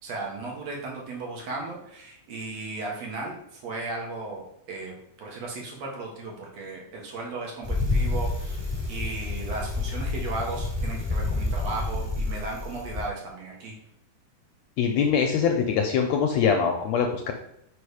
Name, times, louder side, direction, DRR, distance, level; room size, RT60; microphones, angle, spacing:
voice 1, 0.0-8.6 8.9-13.7, right 3 dB, 60° right, -1 dB, 2.5 m, -35 dB
Bicycle, 7.6-13.1, left 2 dB, 20° right, 1.7 m, -29 dB
voice 2, 14.8-17.3, left 6 dB, 75° left, 3 dB, 1.7 m, -23 dB
5.5 x 5.1 x 4.9 m, 0.79 s
omnidirectional pair, 3.6 m